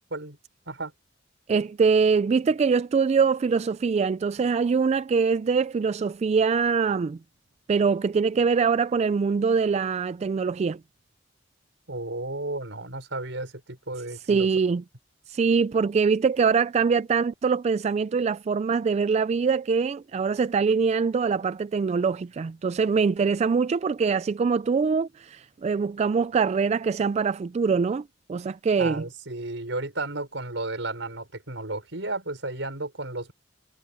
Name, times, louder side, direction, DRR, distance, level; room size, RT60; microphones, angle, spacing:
voice 1, 1.5-7.2 7.7-10.8 14.3-14.8 15.3-29.0, right 5 dB, 35° right, 0.3 m, -23 dB
voice 2, 11.9-14.5 28.8-33.3, right 2 dB, 75° right, 6.1 m, -33 dB
head